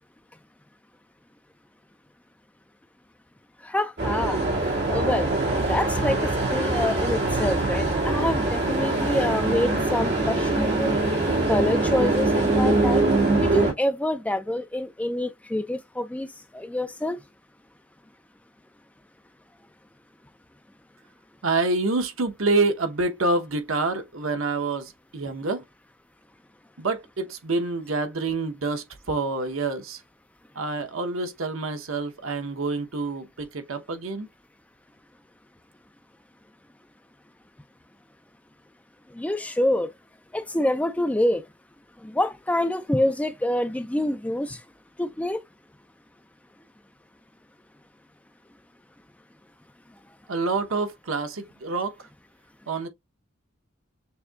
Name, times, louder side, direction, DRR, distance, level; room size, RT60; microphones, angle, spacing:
voice 1, 3.6-4.4 4.9-5.3 5.6-11.0 11.5-13.1 13.4-16.3 16.5-17.2 39.1-39.9 40.3-41.4 42.0-44.6 45.0-45.4, left 1 dB, 5° left, 0.4 m, -26 dB
sound 1, 4.0-13.7, right 2 dB, 55° right, 2.2 m, -23 dB
voice 2, 21.4-25.6 26.8-30.0 30.6-34.3 50.3-51.9 52.7-52.9, right 3 dB, 75° right, 0.9 m, -27 dB
6.6 x 2.6 x 2.3 m
head